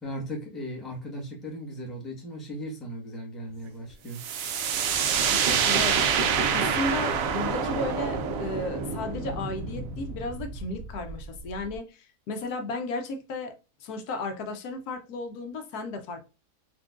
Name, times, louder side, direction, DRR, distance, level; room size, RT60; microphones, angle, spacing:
voice 1, 0.0-4.2, equal, ahead, 0.9 m, -37 dB
sound 1, 3.4-4.1 4.8-4.9 5.2-7.0 7.5-7.6 7.8-7.9 8.2-8.3, right 3 dB, 85° right, 0.4 m, -37 dB
sound 2, 4.2-11.8, right 6 dB, 70° right, 0.9 m, -27 dB
voice 2, 5.3-13.5 13.8-16.2, left 2 dB, 75° left, 1.1 m, -34 dB
4.2 x 2.6 x 2.4 m
omnidirectional pair, 1.7 m